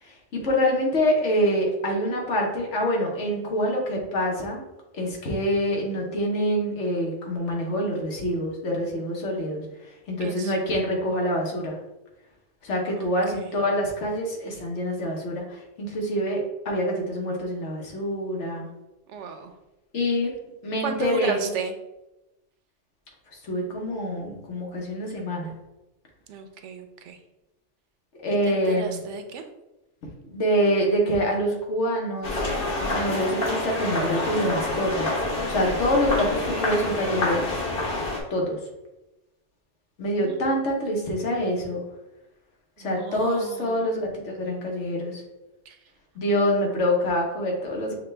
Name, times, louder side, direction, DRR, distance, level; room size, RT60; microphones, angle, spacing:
voice 1, 0.0-4.6 4.9-11.8 12.6-18.7 19.9-20.3 20.6-21.5 23.4-25.5 28.2-29.0 30.3-32.4 32.9-37.5 38.3-38.6 40.0-41.8 42.8-45.2 46.1-48.0, equal, 75° left, -1 dB, 1.3 m, -26 dB
voice 2, 10.2-10.5 13.0-13.1 13.3-13.6 19.1-19.5 20.8-21.7 26.3-27.2 28.4-29.4 40.2-40.4 42.8-43.8 45.7-45.8, right 5 dB, 75° right, 6 dB, 0.9 m, -33 dB
sound 1, 32.2-38.2, left 2 dB, 50° left, 1.1 m, -27 dB
6.5 x 2.3 x 3.2 m, 0.97 s
omnidirectional pair, 1.2 m